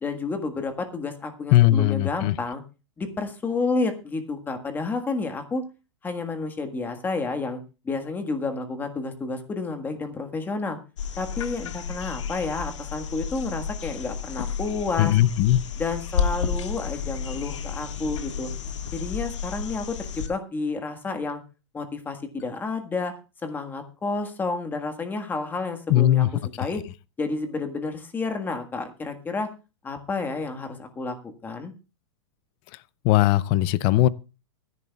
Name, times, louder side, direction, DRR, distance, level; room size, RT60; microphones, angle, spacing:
voice 1, 0.0-2.6 3.0-5.6 6.0-7.6 7.8-10.8 11.2-15.2 15.8-18.5 18.9-21.4 21.7-23.1 23.4-26.3 26.6-26.8 27.2-29.5 29.8-31.7, left 3 dB, 10° left, 1.6 m, -30 dB
voice 2, 1.5-2.3 15.0-15.6 25.9-26.3 33.0-34.1, left 14 dB, 35° left, 0.5 m, -19 dB
sound 1, 11.0-20.3 22.4-22.5, left 6 dB, 80° left, 1.7 m, -31 dB
23.5 x 11.0 x 2.3 m
hypercardioid pair, 145°, 15 cm